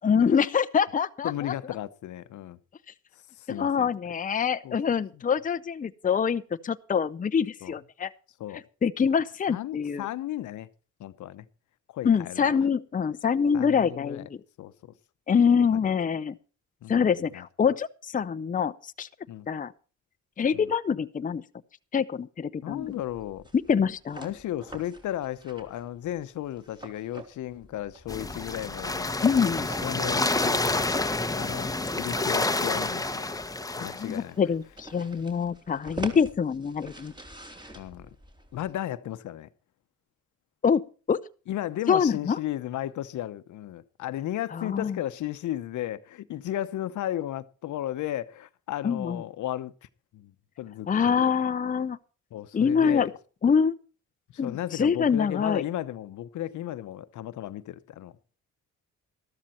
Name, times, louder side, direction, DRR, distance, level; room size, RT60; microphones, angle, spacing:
voice 1, 0.0-1.5 3.6-8.1 8.8-10.1 12.0-14.4 15.3-16.4 16.9-19.1 19.5-19.7 20.4-21.4 21.9-22.9 23.7-24.3 29.2-29.6 34.0-37.1 40.6-41.2 41.9-42.4 44.7-45.0 48.8-49.2 50.9-52.0 52.5-53.1 53.4-53.7 54.4-55.6, left 6 dB, 25° left, 0.7 m, -25 dB
voice 2, 1.2-2.6 3.3-3.9 4.6-4.8 5.1-5.2 7.6-7.7 8.4-8.6 9.5-10.7 11.0-11.5 11.9-12.5 13.5-14.3 14.6-14.9 15.8-15.9 16.8-17.4 19.3-19.5 20.5-20.7 22.6-23.5 24.2-29.1 29.6-30.9 31.3-33.3 33.8-34.4 36.0-36.2 37.7-38.1 38.5-39.5 41.5-49.7 50.1-50.3 50.6-51.2 52.3-53.1 54.3-58.1, left 13 dB, 75° left, 0.9 m, -35 dB
sound 1, 22.7-38.7, right 2 dB, 15° right, 3.2 m, -46 dB
sound 2, 28.1-34.2, left 2 dB, 10° left, 1.0 m, -28 dB
13.0 x 13.0 x 4.3 m
cardioid pair, 90°, 30 cm